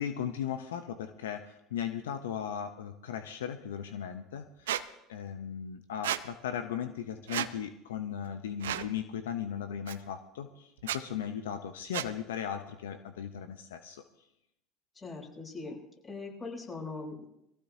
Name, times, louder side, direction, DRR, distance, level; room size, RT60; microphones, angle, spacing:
voice 1, 0.0-4.8 5.1-14.0, left 8 dB, 80° left, 8 dB, 0.7 m, -37 dB
Squeak, 4.7-4.8 6.0-6.2 7.3-7.5 8.6-8.9 9.9-10.0 10.8-11.0 11.9-12.1, right 11 dB, 80° right, 0.6 m, -32 dB
voice 2, 14.9-17.3, left 3 dB, 25° left, -2 dB, 7.5 m, -41 dB
23.0 x 15.0 x 2.8 m, 0.81 s
hypercardioid pair, 75°, 0 cm